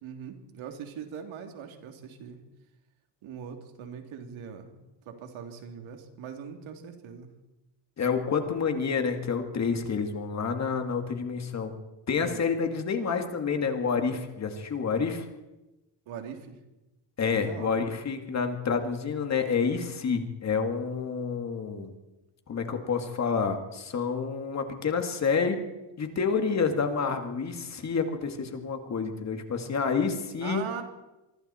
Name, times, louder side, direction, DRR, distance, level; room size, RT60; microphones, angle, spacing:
voice 1, 0.0-2.4 3.2-4.7 5.0-7.3 12.1-12.4 16.1-16.6 17.3-17.8 30.4-30.8, right 7 dB, 80° right, 4 dB, 3.4 m, -41 dB
voice 2, 8.0-11.7 12.1-15.3 17.2-21.9 22.5-25.6 26.0-30.6, left 5 dB, 35° left, 6 dB, 2.3 m, -28 dB
26.0 x 24.0 x 4.5 m, 1.0 s
cardioid pair, 160°, 47 cm